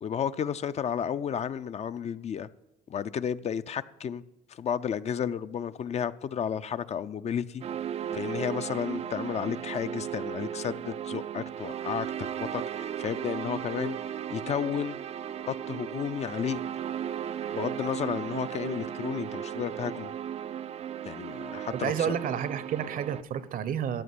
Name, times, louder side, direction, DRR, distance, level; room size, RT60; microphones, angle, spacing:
voice 1, 0.0-2.5 2.9-4.2 4.5-7.6 8.1-15.0 15.5-16.6 17.5-20.1 21.0-22.1, left 8 dB, 40° left, 0.4 m, -32 dB
sound 1, 7.6-23.2, right 9 dB, 40° right, 0.4 m, -36 dB
voice 2, 21.7-24.0, right 9 dB, 55° right, 0.8 m, -30 dB
13.5 x 5.9 x 9.6 m
cardioid pair, 110°, 17 cm